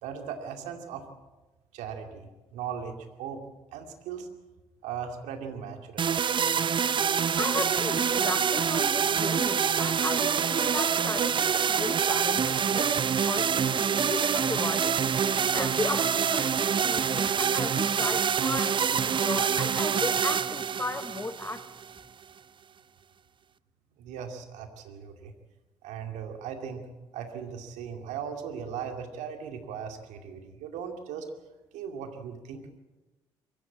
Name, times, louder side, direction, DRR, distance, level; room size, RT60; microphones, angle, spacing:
voice 1, 0.0-1.0 1.7-3.4 3.7-4.3 4.8-6.2 24.0-25.3 25.8-26.9 27.1-31.3 31.7-32.8, right 7 dB, 70° right, 5 dB, 2.4 m, -38 dB
sound 1, 6.0-22.0, right 7 dB, 40° right, 0.7 m, -26 dB
voice 2, 7.4-14.9 15.5-21.7, left 2 dB, 20° left, 13 dB, 0.8 m, -36 dB
23.0 x 15.0 x 8.7 m, 1.1 s
hypercardioid pair, 50°, 13 cm